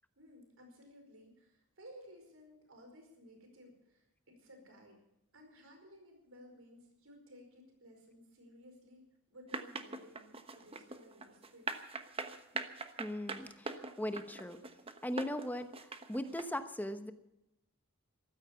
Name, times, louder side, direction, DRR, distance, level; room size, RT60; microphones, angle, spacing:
voice 1, 0.2-5.0 5.3-9.0 9.3-11.7, equal, 70° right, 3 dB, 5.0 m, -57 dB
sound 1, 9.5-16.4, right 3 dB, 25° right, 1.1 m, -41 dB
voice 2, 13.0-14.6 15.0-17.1, equal, 10° left, 9 dB, 1.0 m, -39 dB
14.5 x 13.0 x 7.0 m, 0.87 s
head